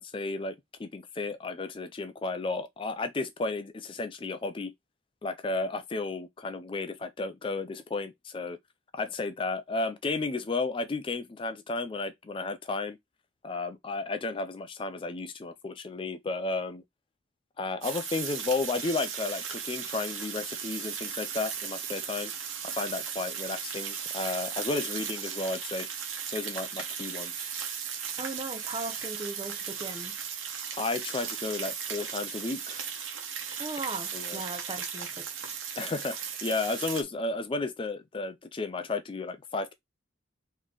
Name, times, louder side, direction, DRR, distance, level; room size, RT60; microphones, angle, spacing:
voice 1, 0.0-4.7 5.2-8.6 8.9-13.0 13.4-16.8 17.6-22.3 22.6-25.9 26.3-27.5 30.8-32.8 34.1-34.4 35.8-39.7, left 3 dB, 25° left, 0.4 m, -33 dB
sound 1, 17.8-37.0, right 7 dB, 85° right, 1.1 m, -36 dB
voice 2, 28.2-30.2 33.6-35.3, right 3 dB, 25° right, 0.8 m, -38 dB
4.1 x 3.1 x 3.7 m
head